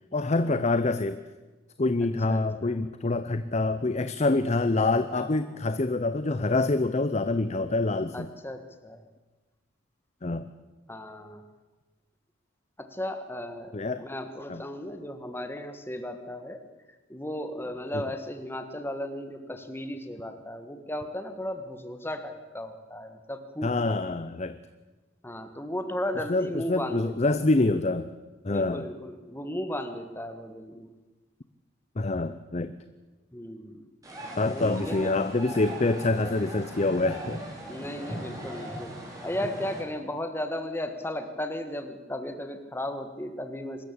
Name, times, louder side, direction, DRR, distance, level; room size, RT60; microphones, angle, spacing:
voice 1, 0.1-1.2 1.8-8.3 10.2-10.5 13.7-14.0 14.5-14.6 17.9-18.0 23.6-24.6 26.3-28.1 28.4-28.9 32.0-32.8 34.4-37.4, left 2 dB, 35° left, 12 dB, 0.6 m, -26 dB
voice 2, 2.3-2.8 5.1-5.6 8.1-9.0 10.9-11.4 12.8-16.6 17.1-24.2 25.2-27.4 28.5-30.9 33.3-33.8 34.4-35.1 35.8-35.9 37.7-43.8, left 1 dB, 10° left, 8 dB, 1.6 m, -35 dB
sound 1, 34.0-39.8, right 1 dB, 20° right, 5.2 m, -39 dB
23.5 x 13.5 x 8.7 m, 1.2 s
head